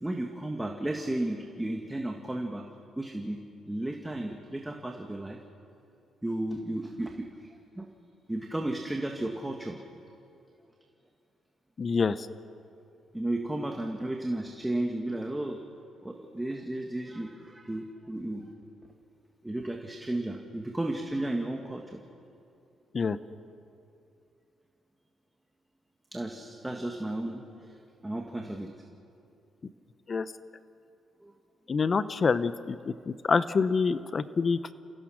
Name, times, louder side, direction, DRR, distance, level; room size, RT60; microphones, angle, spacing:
voice 1, 0.0-2.7 3.0-5.4 6.2-7.5 7.8-7.9 8.3-9.8 13.1-15.6 16.0-18.5 19.4-22.0 26.1-27.7 28.0-28.7 31.2-31.3, right 1 dB, 10° right, 2 dB, 1.6 m, -34 dB
voice 2, 11.8-12.1 22.9-23.2 30.1-30.2 31.7-32.8 33.1-34.7, left 5 dB, 40° left, 14 dB, 0.8 m, -26 dB
30.0 x 16.0 x 6.4 m, 2.6 s
cardioid pair, 90°, 0 cm